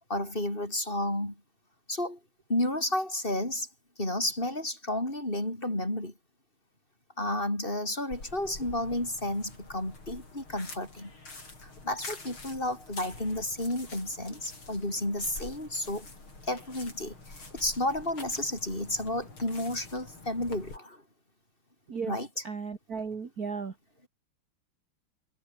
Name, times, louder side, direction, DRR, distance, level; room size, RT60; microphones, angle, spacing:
voice 1, 0.1-1.4 1.9-2.2 2.5-3.7 4.0-6.1 7.2-11.1 11.6-16.1 16.4-21.0 22.1-22.4, left 1 dB, 20° left, 8.0 m, -32 dB
sound 1, 8.1-20.8, left 3 dB, 65° left, 7.3 m, -46 dB
voice 2, 22.4-23.7, right 5 dB, 45° right, 2.5 m, -35 dB
omnidirectional pair, 2.4 m